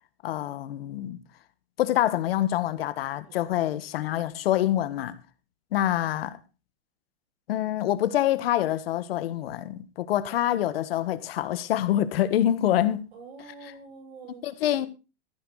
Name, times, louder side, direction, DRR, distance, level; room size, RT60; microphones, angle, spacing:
voice 1, 0.2-1.2 1.8-5.2 5.7-6.4 7.5-13.1 14.4-14.9, left 12 dB, 70° left, 1.4 m, -26 dB
voice 2, 13.1-14.9, right 4 dB, 80° right, 7.3 m, -48 dB
14.5 x 11.5 x 3.9 m
supercardioid pair, 180°, 31 cm